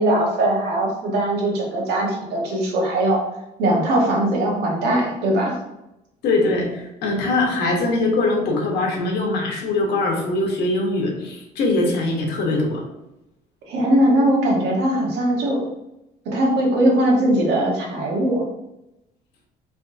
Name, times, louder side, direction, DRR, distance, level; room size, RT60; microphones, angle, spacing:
voice 1, 0.0-3.2 3.6-5.6 13.7-15.7 16.2-18.4, right 1 dB, 80° right, -2 dB, 1.3 m, -20 dB
voice 2, 6.2-12.8, left 2 dB, 75° left, 1 dB, 1.1 m, -22 dB
3.6 x 3.5 x 2.6 m, 0.88 s
cardioid pair, 110°, 17 cm